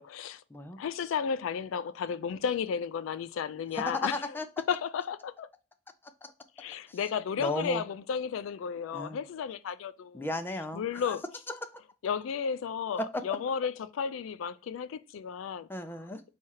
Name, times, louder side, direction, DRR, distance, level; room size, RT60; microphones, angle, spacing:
voice 1, 0.0-0.4 0.8-4.1 4.7-5.5 6.6-10.2 10.7-11.2 12.0-15.7, left 7 dB, 90° left, 0.3 m, -33 dB
voice 2, 3.7-4.5 6.0-6.3 6.9-7.0 7.4-7.8 8.9-9.2 10.1-11.2 11.5-11.8 13.0-13.2 15.7-16.2, left 1 dB, 10° left, 0.4 m, -35 dB
4.2 x 2.4 x 4.6 m
head